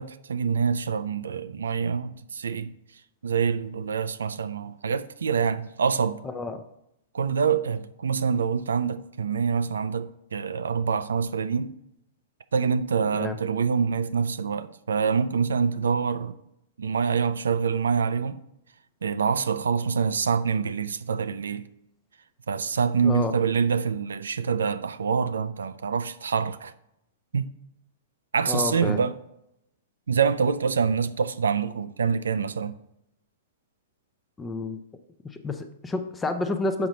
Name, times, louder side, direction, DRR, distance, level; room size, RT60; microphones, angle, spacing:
voice 1, 0.0-2.7 3.2-6.2 7.1-11.7 12.5-16.3 16.8-18.4 19.0-21.6 22.5-26.7 27.3-27.5 28.3-29.1 30.1-32.7, right 6 dB, 85° right, 0.4 m, -26 dB
voice 2, 6.2-6.6 13.1-13.4 23.0-23.3 28.5-29.0 34.4-34.8 35.3-36.9, left 2 dB, 15° left, 0.5 m, -29 dB
5.9 x 5.0 x 4.0 m
hypercardioid pair, 120°, 0 cm